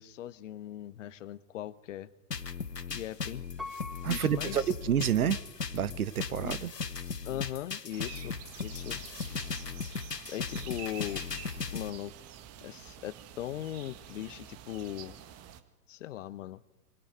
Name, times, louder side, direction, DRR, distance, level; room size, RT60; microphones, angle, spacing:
voice 1, 0.0-2.1 2.9-3.4 4.0-4.8 6.4-6.6 7.2-9.0 10.3-11.2 11.7-12.1 12.6-15.2 15.9-16.6, left 12 dB, 50° left, 1.3 m, -39 dB
sound 1, 2.3-11.9, left 5 dB, 90° left, 1.1 m, -37 dB
Piano, 3.6-5.6 6.1-6.2, left 3 dB, ahead, 1.6 m, -45 dB
voice 2, 4.0-5.4 5.7-6.7, right 9 dB, 65° right, 1.4 m, -29 dB
sound 2, 7.9-15.6, right 10 dB, 30° right, 2.0 m, -48 dB
26.0 x 24.0 x 9.6 m
figure-of-eight pair, 100°, 47 cm